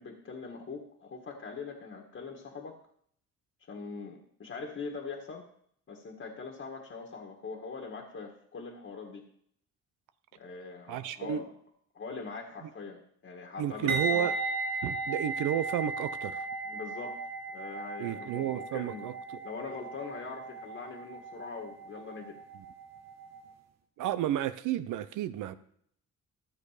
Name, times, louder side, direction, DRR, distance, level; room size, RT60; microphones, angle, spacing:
voice 1, 0.0-2.8 3.7-5.4 5.9-9.2 10.3-11.5 11.9-14.3 16.6-17.2 17.5-19.1 19.4-22.4, left 4 dB, 45° left, 1 dB, 1.7 m, -42 dB
voice 2, 10.9-11.4 13.6-14.3 14.8-16.5 18.0-19.4 24.0-25.6, right 11 dB, 85° right, 12 dB, 0.8 m, -32 dB
sound 1, 13.9-22.8 23.1-23.4, right 3 dB, 60° right, 1.4 m, -36 dB
13.5 x 6.7 x 5.0 m, 0.66 s
cardioid pair, 90°, 30 cm